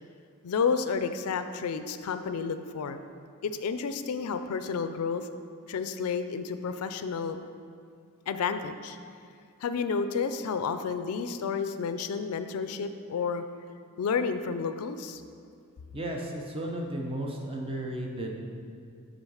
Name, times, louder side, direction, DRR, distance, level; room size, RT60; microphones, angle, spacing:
voice 1, 0.4-3.0 3.4-5.3 5.7-7.4 8.3-9.0 9.6-13.4 14.0-15.2, left 5 dB, 80° left, 10 dB, 0.4 m, -31 dB
voice 2, 15.9-18.4, right 1 dB, 25° right, 0 dB, 0.7 m, -34 dB
6.3 x 3.9 x 6.3 m, 2.4 s
head